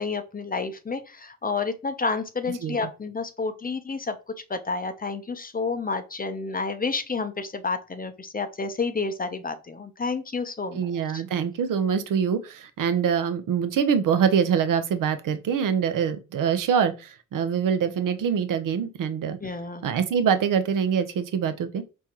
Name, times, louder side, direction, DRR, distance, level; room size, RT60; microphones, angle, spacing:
voice 1, 0.0-4.2 4.5-11.2 19.4-19.9, left 4 dB, 25° left, 0.6 m, -30 dB
voice 2, 10.7-16.9 17.3-19.4 19.8-21.8, right 7 dB, 60° right, 0.6 m, -24 dB
4.3 x 2.3 x 2.9 m
hypercardioid pair, 40°, 37 cm